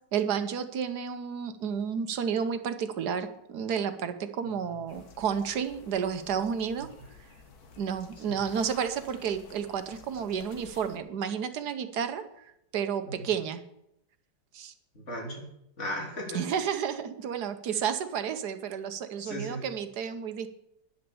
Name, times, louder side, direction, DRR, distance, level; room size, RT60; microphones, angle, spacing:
voice 1, 0.1-6.9 7.8-13.6 14.5-14.7 16.3-20.5, right 7 dB, 65° right, 9 dB, 1.5 m, -31 dB
sound 1, 4.9-11.0, left 5 dB, 60° left, 1.9 m, -52 dB
voice 2, 14.9-16.4 19.2-19.7, equal, 40° left, -1 dB, 3.6 m, -37 dB
10.0 x 10.0 x 7.0 m, 0.79 s
omnidirectional pair, 1.9 m